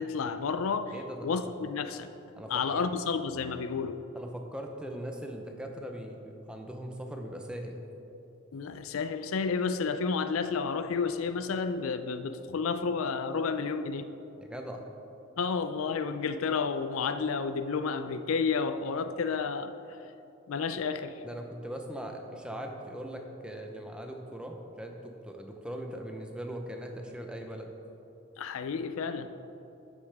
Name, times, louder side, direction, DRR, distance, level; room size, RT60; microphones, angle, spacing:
voice 1, 0.0-0.9 1.2-2.1 2.5-4.0 8.5-14.1 15.4-19.7 20.5-21.2 28.4-29.3, left 5 dB, 75° left, 11 dB, 0.4 m, -31 dB
voice 2, 0.9-1.5 2.4-2.9 4.1-7.9 14.4-14.8 21.2-27.7, right 1 dB, 5° right, 2 dB, 0.7 m, -40 dB
12.0 x 8.3 x 3.5 m, 3.0 s
head